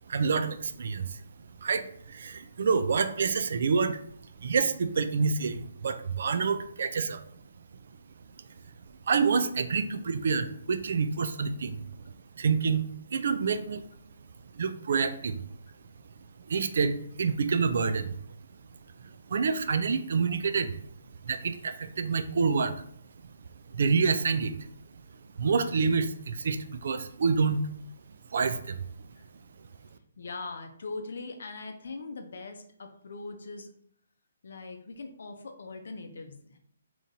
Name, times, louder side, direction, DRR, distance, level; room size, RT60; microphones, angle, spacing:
voice 1, 0.1-1.2 1.6-4.0 4.4-7.2 9.1-11.8 12.4-12.8 13.1-13.8 14.5-15.4 16.5-18.2 19.0-20.8 21.2-22.9 23.7-24.7 25.4-27.7 28.3-28.8, right 5 dB, 65° right, 10 dB, 0.3 m, -27 dB
voice 2, 30.2-33.7 34.4-36.6, left 3 dB, 70° left, 5 dB, 0.6 m, -41 dB
3.7 x 2.9 x 2.7 m, 0.66 s
hypercardioid pair, 150°, 0 cm